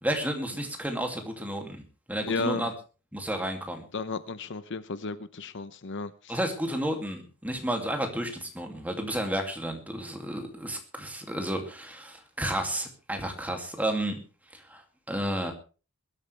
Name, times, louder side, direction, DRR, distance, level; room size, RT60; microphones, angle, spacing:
voice 1, 0.0-1.8 2.1-2.7 3.1-3.8 6.3-14.2 14.5-15.5, right 1 dB, 5° right, 3 dB, 2.6 m, -32 dB
voice 2, 2.3-2.7 3.9-6.4, left 3 dB, 55° left, 13 dB, 0.8 m, -33 dB
21.5 x 12.5 x 3.4 m, 0.35 s
head